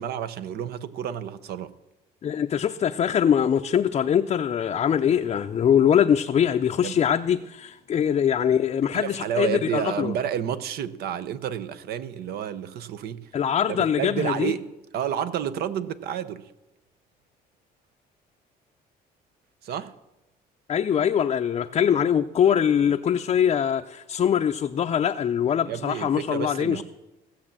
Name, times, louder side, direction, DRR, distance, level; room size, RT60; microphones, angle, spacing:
voice 1, 0.0-1.7 6.8-7.0 8.9-13.3 13.7-16.5 19.6-19.9 22.8-22.9 25.7-26.8, right 9 dB, 70° right, 0.8 m, -30 dB
voice 2, 2.2-10.1 13.3-14.6 20.7-26.8, left 8 dB, 40° left, 0.5 m, -23 dB
16.0 x 7.2 x 7.4 m
cardioid pair, 110°, 17 cm